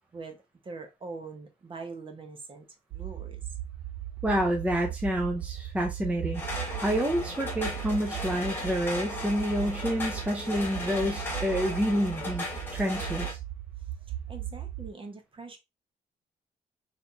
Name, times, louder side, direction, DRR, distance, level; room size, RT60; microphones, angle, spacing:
voice 1, 0.6-2.7 2.9-3.4 14.3-15.6, right 4 dB, 30° right, 1.0 m, -42 dB
sound 1, 2.9-14.9, right 12 dB, 80° right, 0.4 m, -38 dB
voice 2, 4.2-12.4 12.7-13.4, equal, 10° right, 0.6 m, -28 dB
sound 2, 6.3-13.3, left 1 dB, 15° left, 1.4 m, -36 dB
4.2 x 3.5 x 2.5 m
cardioid pair, 135°, 17 cm